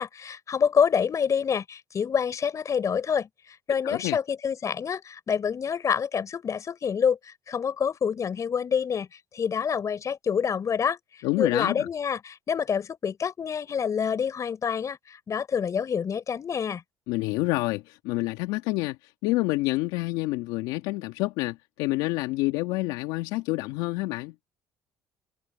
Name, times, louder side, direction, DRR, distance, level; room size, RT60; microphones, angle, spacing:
voice 1, 0.0-11.0 11.4-16.8, left 7 dB, 45° left, 5.1 m, -27 dB
voice 2, 3.8-4.2 11.2-11.9 17.1-24.3, left 20 dB, 75° left, 2.3 m, -28 dB
hypercardioid pair, 70°, 8 cm